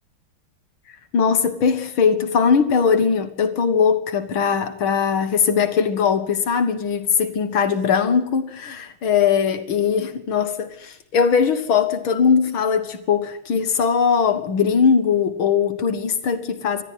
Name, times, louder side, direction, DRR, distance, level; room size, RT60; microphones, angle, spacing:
voice 1, 1.1-16.8, left 6 dB, 80° left, 2.5 m, -20 dB
20.5 x 13.5 x 9.6 m
omnidirectional pair, 2.2 m